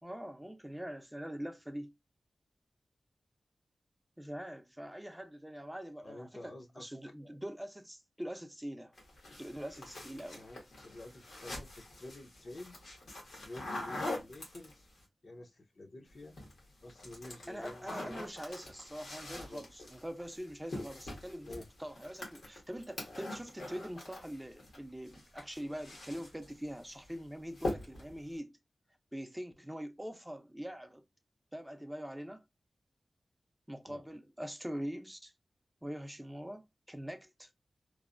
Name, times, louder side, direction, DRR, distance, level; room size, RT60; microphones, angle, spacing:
voice 1, 0.0-1.9 4.2-8.9 9.4-10.4 17.2-28.6 29.1-31.0 31.5-32.5 33.7-35.3 35.8-37.5, equal, 10° right, 0.5 m, -43 dB
voice 2, 6.0-6.8 9.8-9.9 10.3-12.8 13.4-14.9 15.2-16.4 16.8-18.3 19.4-19.6 21.4-21.7 33.9-34.0, left 2 dB, 60° left, 0.7 m, -49 dB
sound 1, 9.0-15.0 16.1-16.6 16.9-24.8 25.1-26.5 26.9-27.2 27.5-28.2, left 2 dB, 90° left, 1.3 m, -44 dB
3.0 x 2.0 x 2.5 m
wide cardioid pair, 70°, 0 cm